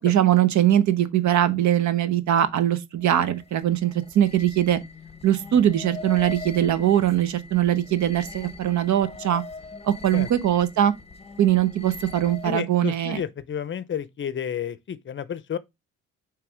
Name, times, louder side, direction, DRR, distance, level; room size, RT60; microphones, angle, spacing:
voice 1, 0.0-4.8 5.2-9.4 9.8-10.9 11.4-13.2, right 11 dB, 70° right, 0.9 m, -21 dB
sound 1, 3.0-12.7, left 4 dB, 20° left, 1.0 m, -41 dB
voice 2, 12.4-15.6, left 8 dB, 40° left, 0.6 m, -31 dB
5.9 x 3.4 x 4.9 m
cardioid pair, 90°, 30 cm